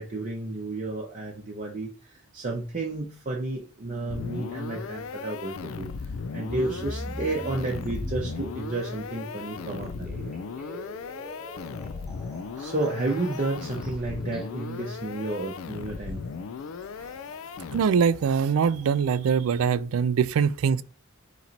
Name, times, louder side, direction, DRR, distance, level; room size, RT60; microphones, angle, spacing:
voice 1, 0.0-5.9 6.3-10.3 12.6-16.2, right 2 dB, 40° right, 0.7 m, -31 dB
sound 1, 4.1-18.2, left 5 dB, 80° left, 0.4 m, -37 dB
sound 2, 6.5-19.2, equal, 5° right, 1.1 m, -42 dB
voice 2, 17.7-20.8, right 6 dB, 90° right, 0.4 m, -23 dB
4.3 x 3.1 x 3.9 m
head